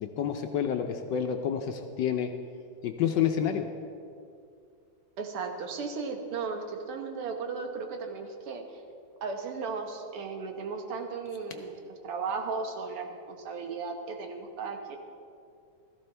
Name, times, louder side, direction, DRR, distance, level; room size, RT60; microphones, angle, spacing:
voice 1, 0.0-2.3 2.8-3.7, left 8 dB, 70° left, 5 dB, 1.1 m, -29 dB
voice 2, 5.2-8.8 9.2-15.0, right 4 dB, 85° right, 4 dB, 2.1 m, -36 dB
16.0 x 13.5 x 3.3 m, 2.4 s
omnidirectional pair, 2.4 m